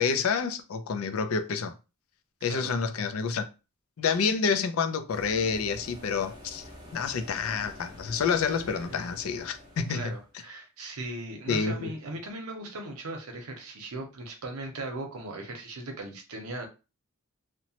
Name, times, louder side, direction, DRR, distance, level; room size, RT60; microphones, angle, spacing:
voice 1, 0.0-1.7 2.4-3.4 4.0-10.1 11.5-11.9, left 5 dB, 70° left, 0.4 m, -28 dB
sound 1, 5.1-10.3, left 1 dB, 20° right, 0.8 m, -47 dB
voice 2, 8.7-9.0 9.9-16.7, right 2 dB, 75° right, 0.8 m, -38 dB
2.9 x 2.1 x 2.8 m
head